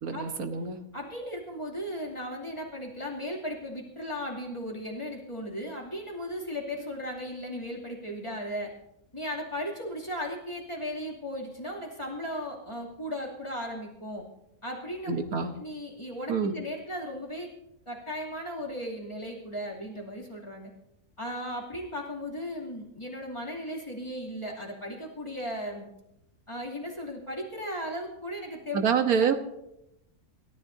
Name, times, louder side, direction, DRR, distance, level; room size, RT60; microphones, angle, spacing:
voice 1, 0.0-0.8 15.1-15.5 16.3-16.5 28.7-29.3, right 6 dB, 90° right, 7 dB, 1.6 m, -26 dB
voice 2, 0.9-8.7 9.1-14.2 14.6-15.1 15.6-17.5 17.9-20.7 21.2-25.9 26.5-28.8, equal, 20° left, -2 dB, 2.8 m, -36 dB
27.5 x 13.5 x 2.7 m, 0.85 s
omnidirectional pair, 1.5 m